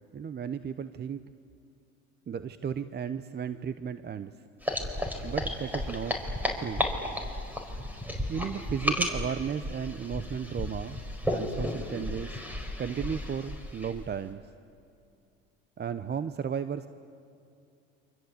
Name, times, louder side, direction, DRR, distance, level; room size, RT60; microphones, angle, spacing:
voice 1, 0.1-1.2 2.3-4.3 5.2-6.2 6.6-6.9 8.3-11.0 11.3-12.4 12.8-14.4 15.8-16.9, right 7 dB, 35° right, 12 dB, 0.9 m, -34 dB
sound 1, 4.6-14.1, left 1 dB, 5° right, 4.6 m, -33 dB
28.5 x 25.0 x 8.3 m, 2.6 s
supercardioid pair, 85°, 31 cm